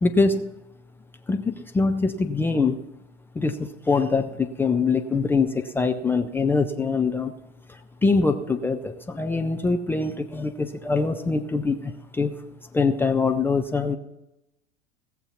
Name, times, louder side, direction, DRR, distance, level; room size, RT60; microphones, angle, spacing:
voice 1, 0.0-0.5 1.3-2.8 3.4-7.3 8.0-12.3 12.7-14.0, left 4 dB, 5° left, 4 dB, 0.3 m, -23 dB
17.5 x 7.2 x 5.7 m, 0.92 s
figure-of-eight pair, 85°, 39 cm